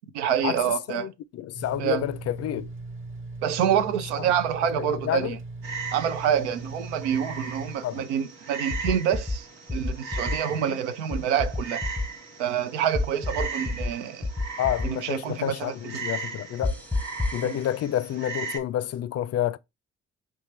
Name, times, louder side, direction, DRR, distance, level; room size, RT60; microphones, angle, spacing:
voice 1, 0.1-1.1 1.8-2.0 3.4-5.4 5.9-11.8 12.4-14.3 14.8-16.0 17.4-17.6, right 9 dB, 85° right, 0.6 m, -27 dB
voice 2, 0.9-2.7 4.2-4.3 4.8-5.4 7.8-8.1 10.6-10.8 14.6-16.8 17.3-19.6, left 12 dB, 45° left, 0.5 m, -29 dB
sound 1, 1.5-7.8, right 3 dB, 35° right, 1.2 m, -39 dB
Frog, 5.6-18.6, right 4 dB, 70° right, 1.3 m, -38 dB
sound 2, 8.7-9.4 9.7-10.4 11.1-12.1 12.9-13.9 14.2-14.9 16.6-17.4, left 3 dB, 5° left, 0.7 m, -28 dB
4.4 x 3.3 x 3.1 m
hypercardioid pair, 45°, 34 cm